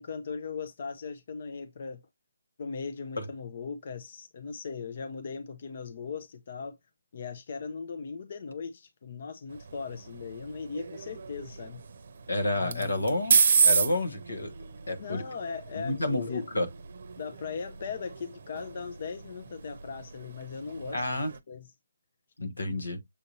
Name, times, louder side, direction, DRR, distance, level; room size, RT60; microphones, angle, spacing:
voice 1, 0.0-2.0 2.6-6.8 7.1-11.8 12.5-13.1 15.0-16.5 17.2-21.1 21.5-21.7, left 5 dB, 50° left, 0.6 m, -38 dB
sound 1, 9.5-21.4, right 6 dB, 55° right, 0.7 m, -31 dB
voice 2, 12.3-13.3 13.6-14.5 14.9-15.2 15.8-16.7 20.9-21.3 22.4-23.0, left 1 dB, 85° left, 1.2 m, -30 dB
6.9 x 2.6 x 2.9 m
figure-of-eight pair, 150°, 0 cm